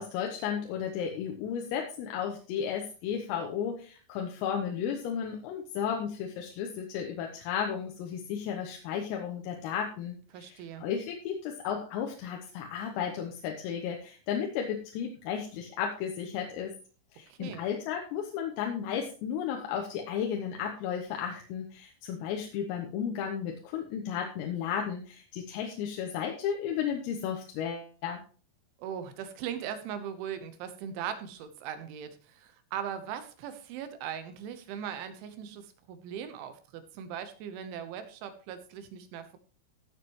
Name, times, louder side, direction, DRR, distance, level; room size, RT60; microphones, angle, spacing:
voice 1, 0.0-16.7 17.1-28.2, left 8 dB, 85° left, 2 dB, 3.8 m, -34 dB
voice 2, 10.3-10.8 17.3-17.6 28.8-39.4, right 8 dB, 75° right, 9 dB, 3.3 m, -39 dB
15.5 x 7.4 x 3.1 m, 0.38 s
omnidirectional pair, 5.9 m